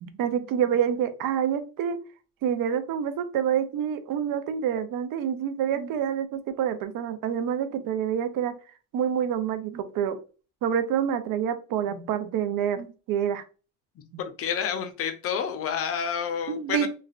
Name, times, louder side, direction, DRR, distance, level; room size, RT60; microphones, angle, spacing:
voice 1, 0.0-2.0 2.4-8.5 8.9-10.2 10.6-13.4 14.1-14.2 16.5-16.9, right 8 dB, 80° right, 0.5 m, -27 dB
voice 2, 14.2-16.9, left 7 dB, 45° left, 0.5 m, -29 dB
3.2 x 2.3 x 2.3 m
cardioid pair, 140°, 32 cm